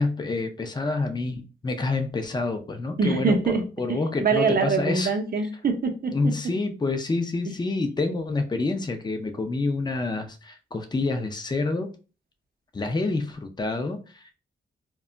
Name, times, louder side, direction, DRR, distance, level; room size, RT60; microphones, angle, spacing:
voice 1, 0.0-3.4 3.8-5.1 6.1-11.9 12.7-14.4, left 3 dB, 20° left, 0.5 m, -27 dB
voice 2, 3.0-3.6 3.9-6.3 7.5-7.6, right 4 dB, 45° right, 0.6 m, -24 dB
2.2 x 2.0 x 3.7 m
cardioid pair, 70°, 21 cm